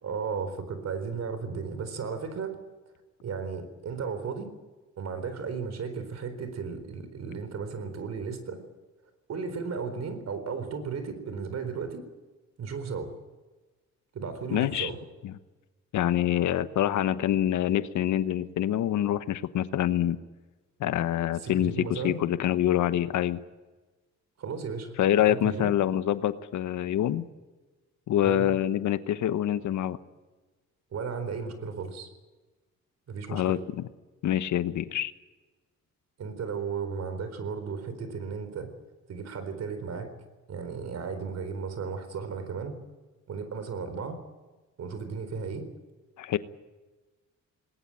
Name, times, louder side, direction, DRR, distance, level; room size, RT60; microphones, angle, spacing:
voice 1, 0.0-2.6 3.2-4.5 5.0-8.6 9.3-12.0 12.6-13.1 14.1-15.0 21.4-22.2 24.4-24.9 25.3-25.7 28.2-28.5 30.9-32.1 33.1-33.6 36.2-38.7 39.1-40.1 40.5-42.8 43.3-44.2 44.8-45.7, right 5 dB, 60° right, 10 dB, 4.2 m, -35 dB
voice 2, 14.5-14.9 15.2-15.3 15.9-20.2 20.8-23.4 25.0-27.3 28.1-30.0 33.3-33.8 34.2-35.1 46.2-46.4, left 11 dB, 75° left, 13 dB, 1.2 m, -26 dB
20.0 x 19.0 x 9.0 m, 1.2 s
cardioid pair, 90°, 30 cm